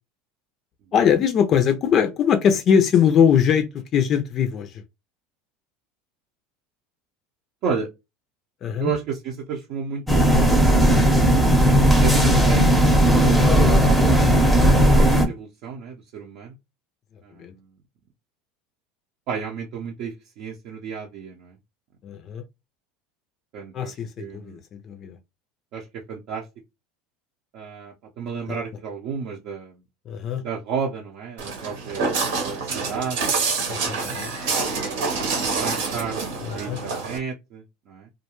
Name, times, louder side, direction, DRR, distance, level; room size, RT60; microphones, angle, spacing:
voice 1, 0.9-3.7 3.9-4.8 8.6-8.9 11.6-11.9 17.4-17.5 22.0-22.4 23.7-25.2 28.5-28.6 30.1-30.4 33.7-34.3 36.4-36.8, left 8 dB, 40° left, 0.4 m, -21 dB
voice 2, 8.8-10.7 12.0-14.3 14.9-16.5 17.2-17.7 19.3-21.6 23.5-23.9 24.2-24.6 25.7-26.4 27.5-29.7 30.4-33.3 34.5-34.8 35.6-38.1, right 6 dB, 55° right, 0.6 m, -32 dB
sound 1, 10.1-15.2, equal, ahead, 0.7 m, -16 dB
Walk footsteps, 31.4-37.2, right 4 dB, 80° right, 1.0 m, -27 dB
2.4 x 2.2 x 2.9 m
supercardioid pair, 125°, 0 cm